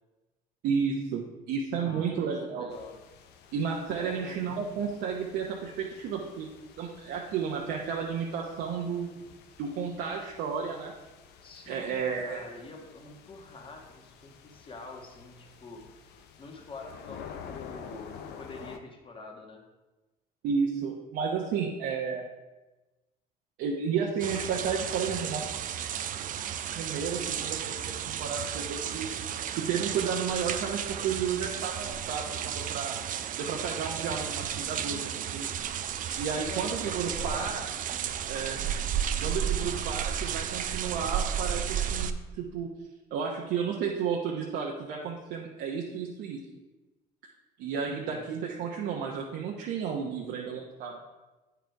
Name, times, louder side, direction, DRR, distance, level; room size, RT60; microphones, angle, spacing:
voice 1, 0.6-2.7 3.5-6.5 6.8-9.2 9.6-10.9 11.7-12.4 20.4-22.3 23.6-25.4 26.7-29.1 29.5-32.9 33.4-35.6 36.2-37.7 38.2-38.7 39.2-42.7 43.1-46.4 47.6-51.0, right 6 dB, 85° right, -1 dB, 0.9 m, -32 dB
voice 2, 1.7-2.9 4.0-4.4 11.4-15.8 16.4-19.6 34.6-35.0 36.3-37.6 47.8-48.2, left 3 dB, 30° left, 1 dB, 1.5 m, -46 dB
sound 1, 2.7-18.8, left 7 dB, 75° left, 0.7 m, -50 dB
sound 2, 24.2-42.1, right 9 dB, 50° right, 0.5 m, -33 dB
9.1 x 5.0 x 4.5 m, 1.1 s
cardioid pair, 110°, 17 cm